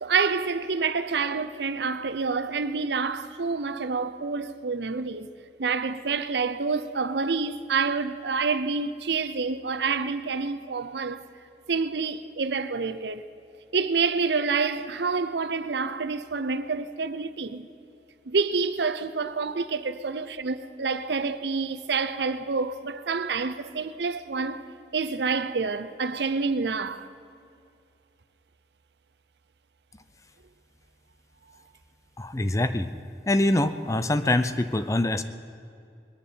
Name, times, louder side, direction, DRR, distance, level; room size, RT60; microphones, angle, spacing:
voice 1, 0.0-5.3 5.6-11.2 11.7-13.3 13.7-17.7 18.3-24.6 24.9-27.1, right 4 dB, 75° right, 0.7 m, -28 dB
voice 2, 32.2-32.9 33.3-35.2, left 1 dB, 20° left, 0.5 m, -24 dB
21.0 x 7.0 x 9.4 m
head